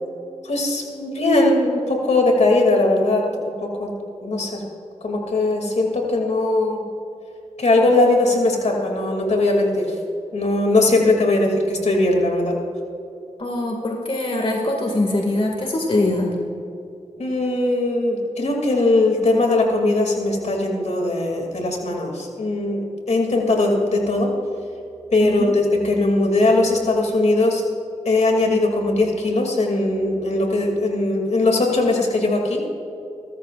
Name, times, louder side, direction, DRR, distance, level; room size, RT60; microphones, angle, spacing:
voice 1, 0.4-3.9 4.2-4.6 5.0-6.8 7.6-10.0 10.3-12.6 17.2-24.3 25.1-27.6 28.0-32.6, left 2 dB, 65° left, 1 dB, 2.6 m, -20 dB
voice 2, 13.4-16.3 25.2-25.5, left 2 dB, 50° left, 0 dB, 2.1 m, -22 dB
23.5 x 13.5 x 2.5 m, 2.8 s
cardioid pair, 55°, 13 cm